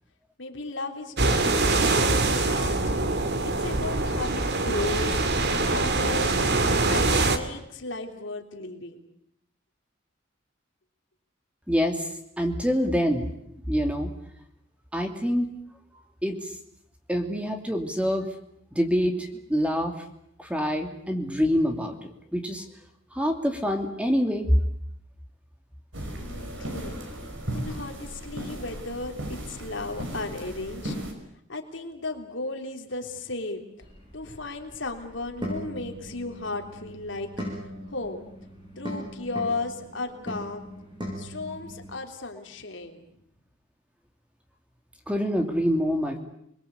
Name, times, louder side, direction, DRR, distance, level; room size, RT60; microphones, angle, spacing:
voice 1, 0.4-2.9 3.6-5.2 5.7-6.5 6.9-9.0 26.2-26.9 27.5-30.9 31.5-33.6 34.1-37.3 37.9-38.3 38.8-40.7 41.2-43.1, left 2 dB, 70° left, 4 dB, 3.4 m, -35 dB
sound 1, 1.2-7.4, right 2 dB, 55° right, 2.3 m, -24 dB
voice 2, 11.7-13.3 13.7-14.1 14.9-15.5 16.2-16.6 17.1-18.3 18.7-20.0 20.4-22.6 23.1-24.5 45.1-46.2, equal, 5° right, 4 dB, 2.6 m, -26 dB
sound 2, 25.9-31.1, equal, 75° right, 5.7 m, -36 dB
sound 3, 33.8-42.0, equal, 25° right, 7.8 m, -39 dB
29.0 x 21.5 x 8.4 m, 0.74 s
head